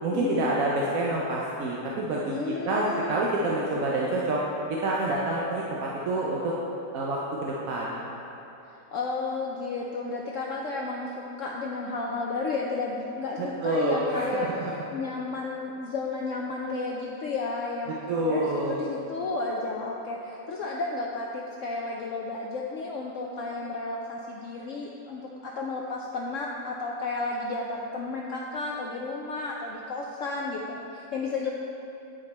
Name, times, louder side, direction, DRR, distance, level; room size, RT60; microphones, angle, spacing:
voice 1, 0.0-2.3 2.7-4.4 4.7-6.6 6.9-8.2 13.4-14.7 17.9-18.8, right 2 dB, 65° right, -4 dB, 0.9 m, -28 dB
voice 2, 2.3-3.2 8.7-14.5 14.9-17.9 18.2-31.5, left 3 dB, 85° left, -1 dB, 0.6 m, -32 dB
8.3 x 5.1 x 4.1 m, 3.0 s
omnidirectional pair, 1.9 m